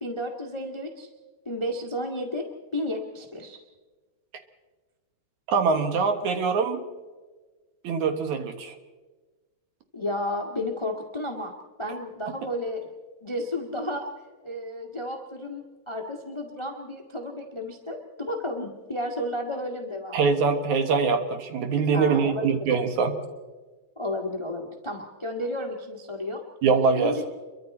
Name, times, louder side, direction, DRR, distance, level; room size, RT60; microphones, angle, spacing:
voice 1, 0.0-1.1 1.4-2.5 2.7-3.6 9.9-11.5 11.8-12.9 13.2-14.1 14.4-20.3 21.9-22.5 23.9-26.4 27.0-27.3, left 1 dB, 15° left, 2 dB, 0.9 m, -32 dB
voice 2, 5.5-6.8 7.8-8.7 20.1-23.2 26.6-27.2, right 5 dB, 65° right, 7 dB, 2.5 m, -23 dB
28.5 x 23.0 x 4.3 m, 1.3 s
omnidirectional pair, 3.9 m